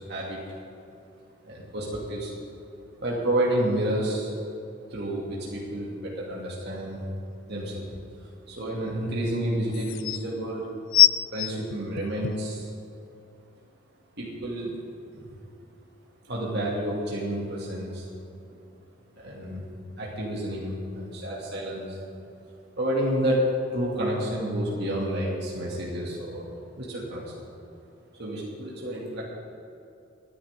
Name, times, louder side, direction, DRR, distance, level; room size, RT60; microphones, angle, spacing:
voice 1, 0.1-0.4 1.4-2.3 3.0-4.3 4.9-7.0 7.4-7.9 8.2-10.8 11.3-12.7 14.2-14.8 15.1-15.3 16.3-18.1 19.2-22.0 22.8-26.4 26.8-27.4 28.2-29.2, right 1 dB, 55° right, -5 dB, 2.5 m, -30 dB
sound 1, 7.6-7.7 9.3-9.4 9.7-10.2 10.9-12.5 13.2-13.3, left 12 dB, 75° left, 0.5 m, -22 dB
24.0 x 10.0 x 3.7 m, 2.7 s
head